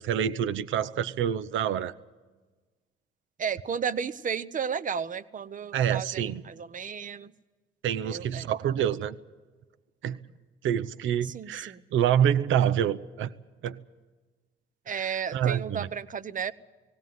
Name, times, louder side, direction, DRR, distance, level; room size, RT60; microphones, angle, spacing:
voice 1, 0.0-1.9 5.7-6.4 7.8-9.2 10.0-10.2 10.6-13.3 13.6-13.8 15.3-15.9, right 9 dB, 80° right, 15 dB, 0.8 m, -27 dB
voice 2, 3.4-7.3 8.0-8.9 11.2-11.8 14.8-16.5, right 7 dB, 40° right, 15 dB, 0.9 m, -33 dB
18.5 x 17.5 x 9.4 m, 1.3 s
cardioid pair, 90°, 20 cm